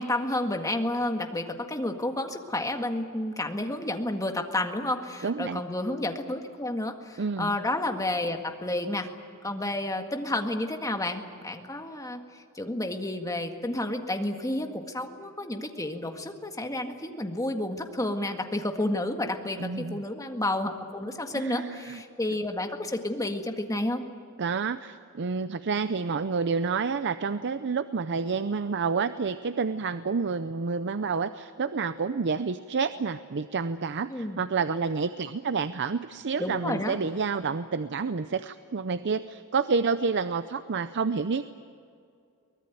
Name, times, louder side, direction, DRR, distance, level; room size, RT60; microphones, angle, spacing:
voice 1, 0.0-12.2 12.6-24.0 34.1-34.4 36.4-37.0, left 1 dB, 15° left, 4 dB, 1.8 m, -31 dB
voice 2, 5.2-5.6 7.2-7.5 19.6-20.0 21.3-22.0 24.4-41.4, right 5 dB, 55° right, 12 dB, 0.6 m, -29 dB
23.5 x 19.5 x 9.3 m, 2.4 s
head